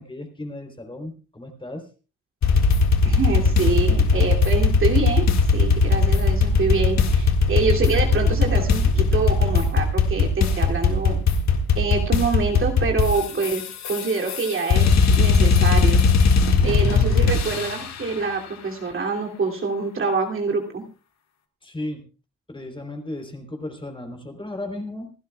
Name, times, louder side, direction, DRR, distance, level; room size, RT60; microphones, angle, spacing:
voice 1, 0.0-1.9 21.6-22.0 22.5-25.1, left 1 dB, 15° left, 5 dB, 3.6 m, -35 dB
sound 1, 2.4-18.0, left 4 dB, 65° left, 1.9 m, -19 dB
voice 2, 3.0-11.2 11.8-13.6 13.9-16.0 16.6-20.8, right 4 dB, 45° right, 1 dB, 2.8 m, -25 dB
27.5 x 11.5 x 2.3 m, 0.33 s
cardioid pair, 90°, 30 cm